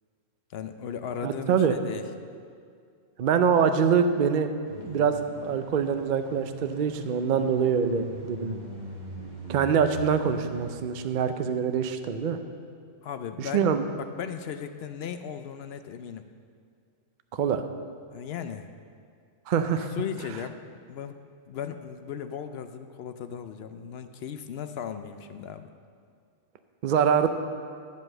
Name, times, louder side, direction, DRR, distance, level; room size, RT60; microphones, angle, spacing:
voice 1, 0.5-2.0 4.7-5.1 13.0-16.2 18.1-18.7 19.6-20.6 20.9-21.2 21.5-25.7, left 8 dB, 65° left, 9 dB, 0.7 m, -37 dB
voice 2, 1.2-1.7 3.2-4.5 4.8-8.6 9.5-12.4 13.4-13.8 17.3-17.6 19.5-19.9 26.8-27.3, right 7 dB, 55° right, 8 dB, 0.5 m, -24 dB
sound 1, 4.6-10.7, right 1 dB, 35° right, 1.4 m, -42 dB
9.6 x 5.4 x 7.4 m, 2.2 s
omnidirectional pair, 1.3 m